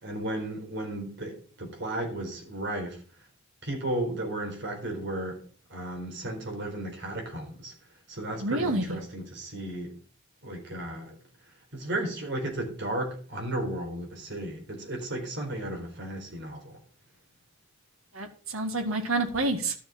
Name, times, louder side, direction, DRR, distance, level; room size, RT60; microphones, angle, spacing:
voice 1, 0.0-3.0 3.6-7.7 8.1-10.0 10.4-11.2 11.7-16.8, right 1 dB, 60° right, 4.2 m, -34 dB
voice 2, 8.4-9.0 18.1-19.7, right 2 dB, 90° right, 1.8 m, -28 dB
12.5 x 6.9 x 5.8 m
head